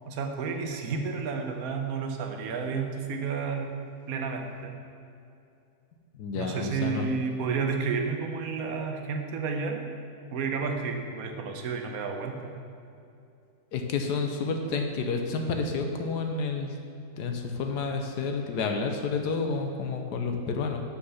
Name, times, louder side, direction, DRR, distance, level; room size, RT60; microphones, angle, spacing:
voice 1, 0.1-3.7 4.1-4.8 6.3-9.9 10.3-12.6, right 5 dB, 60° right, 3 dB, 1.1 m, -31 dB
voice 2, 6.1-7.1 13.7-16.8 17.2-20.8, left 4 dB, 70° left, 4 dB, 1.2 m, -30 dB
6.4 x 5.9 x 5.5 m, 2.6 s
omnidirectional pair, 1.9 m